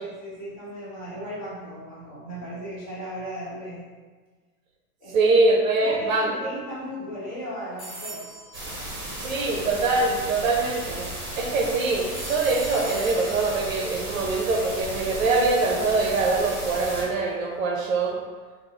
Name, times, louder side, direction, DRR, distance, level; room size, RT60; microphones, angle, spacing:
voice 1, 0.0-3.8 5.0-5.2 5.8-8.4, equal, 20° left, -9 dB, 1.1 m, -36 dB
voice 2, 5.1-6.3 9.2-11.1 11.4-18.2, right 3 dB, 60° right, 1 dB, 0.7 m, -23 dB
sound 1, 7.8-9.8 12.1-15.2, right 1 dB, ahead, 0.7 m, -42 dB
sound 2, 8.5-17.0, right 1 dB, 30° right, 1.4 m, -35 dB
4.0 x 2.1 x 3.8 m, 1.4 s
supercardioid pair, 170°, 45 cm